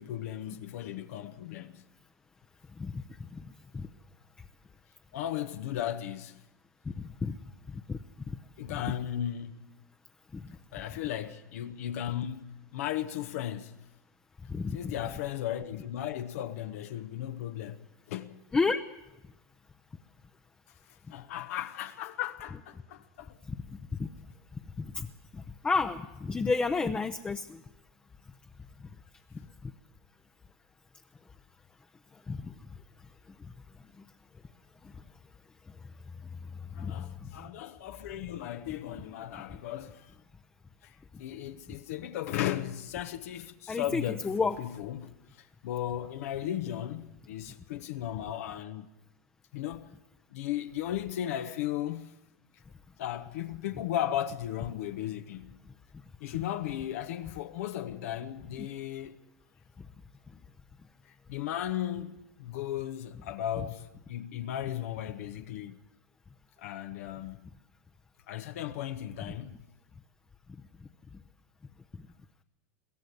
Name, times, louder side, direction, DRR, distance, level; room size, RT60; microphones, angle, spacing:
voice 1, 0.0-1.8 5.1-6.4 8.6-9.7 10.7-13.8 14.7-17.8 18.1-18.4 21.1-23.4 36.7-40.1 40.8-44.2 44.6-48.9 49.5-49.9 50.3-52.1 53.0-55.6 56.2-59.2 61.1-65.8 66.6-67.5 68.3-69.6, left 11 dB, 70° left, 1.1 m, -36 dB
voice 2, 6.9-7.3 7.7-8.0 8.3-8.4 8.7-8.8 10.3-10.5 14.5-14.9 18.5-18.8 23.5-24.1 24.5-25.1 25.3-27.6 29.6-29.7 32.3-32.5 36.8-37.3 43.7-44.6 58.6-58.7 69.3-69.4, left 4 dB, 15° left, 0.7 m, -32 dB
22.5 x 15.5 x 8.2 m
supercardioid pair, 125°, 8 cm